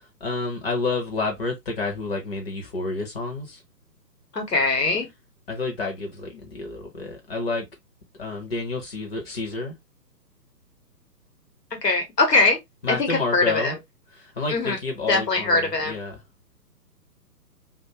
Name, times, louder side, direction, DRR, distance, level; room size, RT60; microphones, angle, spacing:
voice 1, 0.2-3.6 5.5-7.7 8.2-9.8 12.8-13.8 14.2-16.2, left 3 dB, 40° left, 0.8 m, -29 dB
voice 2, 4.3-5.1 11.7-12.6 12.9-13.8 14.5-14.8 15.1-15.9, left 3 dB, 75° left, 1.3 m, -22 dB
2.5 x 2.4 x 2.8 m
figure-of-eight pair, 130°, 49 cm